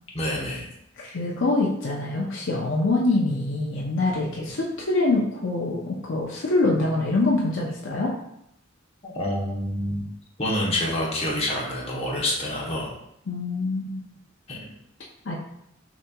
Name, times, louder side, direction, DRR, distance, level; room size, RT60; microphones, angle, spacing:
voice 1, 0.1-0.7 9.0-10.0 10.4-12.9 14.5-14.7, left 1 dB, 30° left, -3 dB, 1.0 m, -27 dB
voice 2, 1.0-8.1 13.3-14.0 15.3-15.4, left 2 dB, 65° left, -3 dB, 0.6 m, -24 dB
6.0 x 2.9 x 2.3 m, 0.78 s
head